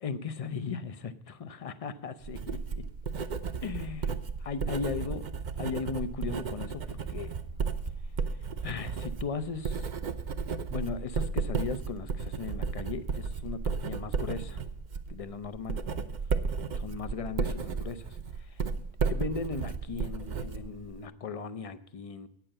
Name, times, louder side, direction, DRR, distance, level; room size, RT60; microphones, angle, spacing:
voice 1, 0.0-2.8 3.6-5.3 5.6-7.3 8.6-9.9 10.7-14.6 15.1-15.8 16.7-22.3, left 5 dB, 50° left, 12 dB, 0.4 m, -37 dB
Writing, 2.2-21.0, right 5 dB, 50° right, 0.6 m, -34 dB
sound 1, 6.7-14.4, left 3 dB, 80° left, 1.4 m, -55 dB
8.8 x 7.0 x 8.7 m, 0.75 s
omnidirectional pair, 1.3 m